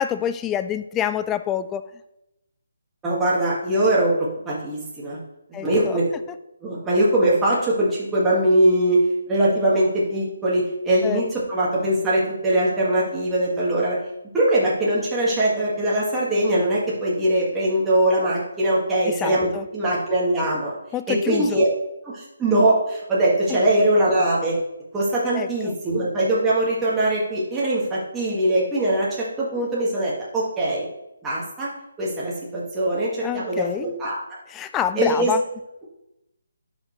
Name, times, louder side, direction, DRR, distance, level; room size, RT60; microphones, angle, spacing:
voice 1, 0.0-1.8 5.5-6.0 11.0-11.2 19.2-19.6 20.9-21.6 25.3-25.5 33.2-33.9 34.5-35.4, left 10 dB, 10° left, 11 dB, 0.3 m, -26 dB
voice 2, 3.0-4.1 4.5-5.2 5.6-6.0 6.6-9.0 9.3-14.0 14.3-20.7 21.1-21.7 22.0-24.6 24.9-30.9 31.2-31.7 32.0-34.2 35.0-35.3, right 1 dB, 10° right, -7 dB, 1.9 m, -21 dB
11.0 x 5.4 x 3.2 m, 0.87 s
hypercardioid pair, 165°, 0 cm